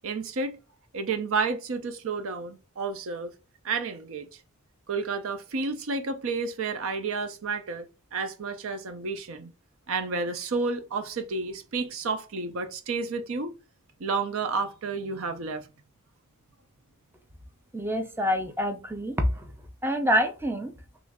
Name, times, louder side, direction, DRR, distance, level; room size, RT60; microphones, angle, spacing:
voice 1, 0.0-0.6 0.9-3.3 3.6-4.3 4.9-7.9 8.1-9.5 9.9-13.5 14.0-15.7, right 4 dB, 65° right, 0.5 m, -31 dB
voice 2, 17.7-19.5 19.8-20.7, equal, 10° right, 0.5 m, -26 dB
3.1 x 2.4 x 3.5 m
head